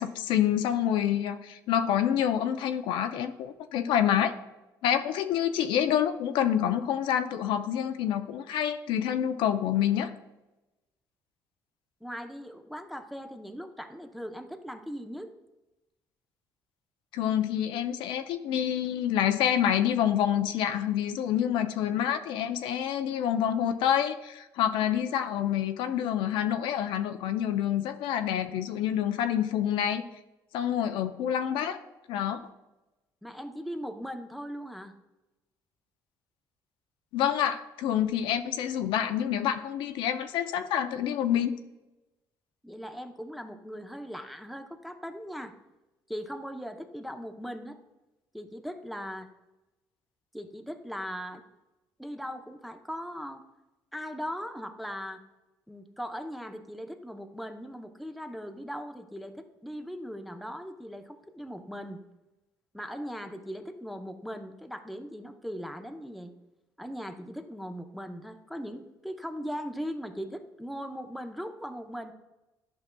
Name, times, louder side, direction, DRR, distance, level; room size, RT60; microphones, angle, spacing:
voice 1, 0.0-4.3 4.8-10.1 17.1-30.0 30.5-31.8 32.1-32.4 37.1-41.5, left 10 dB, 80° left, 8 dB, 0.5 m, -27 dB
voice 2, 12.0-15.3 33.2-34.9 42.6-45.5 46.1-47.8 48.3-49.3 50.3-51.4 52.0-53.4 53.9-55.2 55.7-62.0 62.7-66.3 66.8-72.1, equal, ahead, 5 dB, 0.6 m, -39 dB
10.5 x 5.5 x 2.2 m, 1.0 s
supercardioid pair, 80°, 8 cm